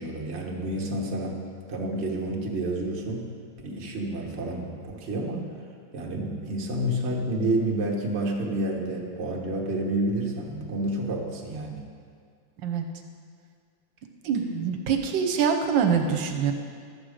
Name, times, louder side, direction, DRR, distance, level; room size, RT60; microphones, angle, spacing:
voice 1, 0.0-1.4 1.7-3.3 3.6-5.5 5.9-11.8, right 1 dB, 40° right, -1 dB, 1.4 m, -29 dB
voice 2, 14.2-16.5, right 7 dB, 75° right, 4 dB, 1.5 m, -24 dB
12.5 x 7.8 x 5.0 m, 2.1 s
omnidirectional pair, 2.1 m